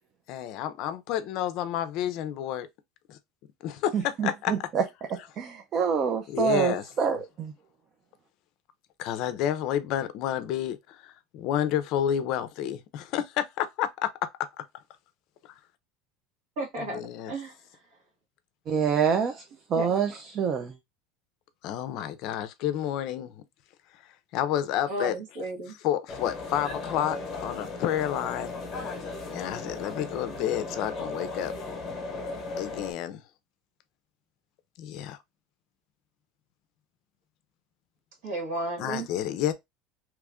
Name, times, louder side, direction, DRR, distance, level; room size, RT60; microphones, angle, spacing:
voice 1, 0.3-2.7 3.1-3.2 3.6-4.5 6.3-6.8 9.0-14.3 16.8-17.3 21.6-23.4 24.3-25.1 25.8-28.5 29.3-31.5 32.6-33.2 34.8-35.2 38.8-39.5, left 11 dB, 50° left, 0.5 m, -30 dB
voice 2, 3.9-4.8 5.1-7.5 18.7-19.4 19.7-20.7, right 6 dB, 30° right, 0.4 m, -26 dB
voice 3, 16.6-17.6 19.7-20.0 24.9-25.8 38.2-39.1, right 1 dB, 60° right, 1.4 m, -33 dB
sound 1, 26.1-32.9, left 3 dB, 15° left, 1.1 m, -36 dB
3.0 x 2.4 x 3.4 m
cardioid pair, 165°, 0 cm